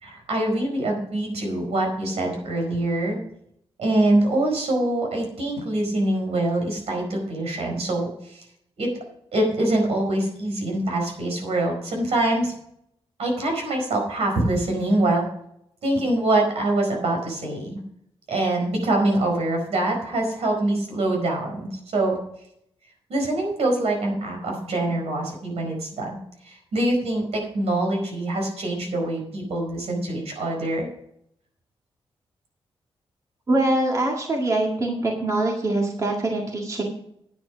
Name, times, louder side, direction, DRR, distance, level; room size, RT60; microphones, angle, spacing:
voice 1, 0.0-3.2 3.8-8.4 8.8-8.9 9.3-12.5 13.2-15.3 15.8-17.8 18.3-22.2 23.1-26.2 26.4-30.9, right 1 dB, 80° right, 2 dB, 4.9 m, -24 dB
voice 2, 33.5-36.8, right 2 dB, 30° right, 0 dB, 1.9 m, -23 dB
9.8 x 9.6 x 5.0 m, 0.72 s
wide cardioid pair, 150°, 11 cm